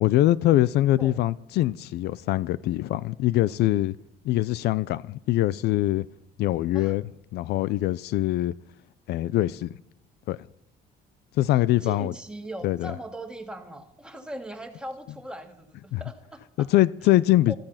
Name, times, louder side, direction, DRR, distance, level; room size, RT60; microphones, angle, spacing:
voice 1, 0.0-3.9 4.2-6.1 6.4-7.0 7.3-8.5 9.1-9.7 10.3-10.4 11.4-12.1 12.6-12.9 15.9-16.0 16.7-17.5, left 15 dB, 80° left, 0.6 m, -23 dB
voice 2, 11.5-16.7 17.5-17.6, right 1 dB, 5° right, 2.2 m, -39 dB
13.5 x 13.5 x 5.8 m
cardioid pair, 110°, 17 cm